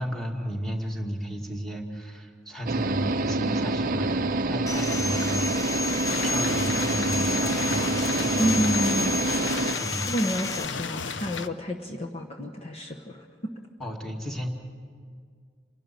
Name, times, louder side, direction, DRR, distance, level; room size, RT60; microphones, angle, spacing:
voice 1, 0.0-8.9 9.8-10.1 11.1-11.3 13.8-14.5, equal, ahead, 1 dB, 2.3 m, -33 dB
sound 1, 2.7-9.7, right 2 dB, 50° right, 0.6 m, -27 dB
Sawing, 4.7-10.7, left 4 dB, 20° left, 0.5 m, -32 dB
sound 2, 6.0-11.5, left 6 dB, 75° left, 0.7 m, -34 dB
voice 2, 8.4-9.2 10.1-13.5, equal, 35° left, 1 dB, 1.1 m, -29 dB
28.0 x 12.5 x 9.1 m, 2.1 s
head